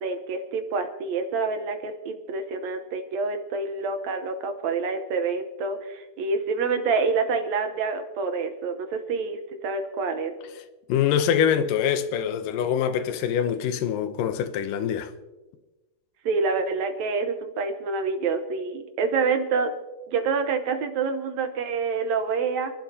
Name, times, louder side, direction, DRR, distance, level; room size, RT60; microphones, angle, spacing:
voice 1, 0.0-10.3 16.3-19.7 20.1-22.7, right 4 dB, 70° right, 2.1 m, -27 dB
voice 2, 10.9-15.1, left 8 dB, 85° left, 2.5 m, -24 dB
29.5 x 11.5 x 2.8 m
omnidirectional pair, 3.8 m